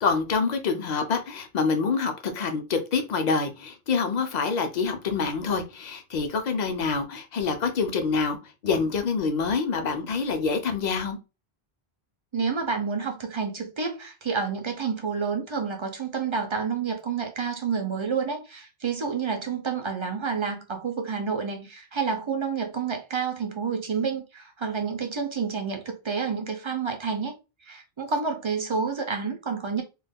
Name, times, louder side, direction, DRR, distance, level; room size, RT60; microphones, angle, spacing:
voice 1, 0.0-8.4 8.6-11.2, left 5 dB, 55° left, 0.5 m, -26 dB
voice 2, 12.3-27.4 27.7-29.8, right 5 dB, 50° right, 0.3 m, -29 dB
2.3 x 2.2 x 3.4 m
omnidirectional pair, 1.1 m